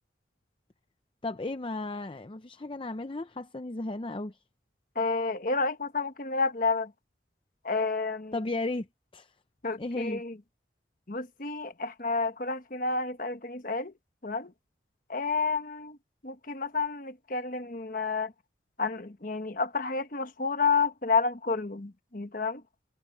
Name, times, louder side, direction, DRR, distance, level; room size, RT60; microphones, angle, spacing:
voice 1, 1.2-4.4 8.3-8.9 9.1-9.3 9.8-10.2, left 2 dB, 25° left, 0.6 m, -34 dB
voice 2, 4.9-6.9 7.6-8.4 9.6-10.4 11.1-13.9 14.2-14.5 15.1-16.0 16.2-18.3 18.8-22.6, left 4 dB, 45° left, 1.2 m, -30 dB
head